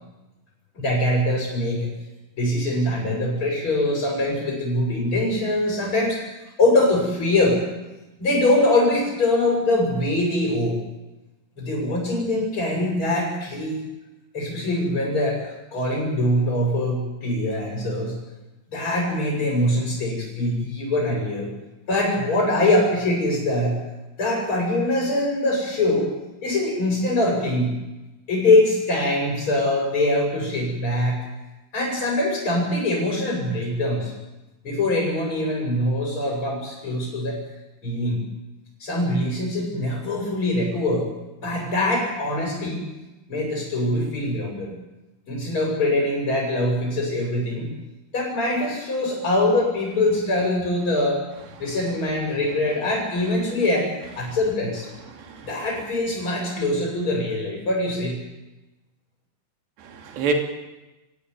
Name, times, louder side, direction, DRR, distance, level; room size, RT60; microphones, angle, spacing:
voice 1, 0.7-1.9 2.4-7.6 8.2-10.8 11.6-13.8 14.3-18.2 18.7-21.5 21.9-23.8 24.2-26.1 26.4-27.7 28.3-31.2 31.7-34.1 34.6-37.4 37.8-38.2 38.8-41.1 41.4-42.8 43.3-44.8 45.3-47.7 48.1-51.2 51.6-54.9 55.4-58.2, left 1 dB, 30° left, -3 dB, 8.0 m, -23 dB
voice 2, 55.0-55.7 59.8-60.3, right 5 dB, 85° right, 3 dB, 5.1 m, -29 dB
26.5 x 16.5 x 9.8 m, 1.0 s
omnidirectional pair, 4.8 m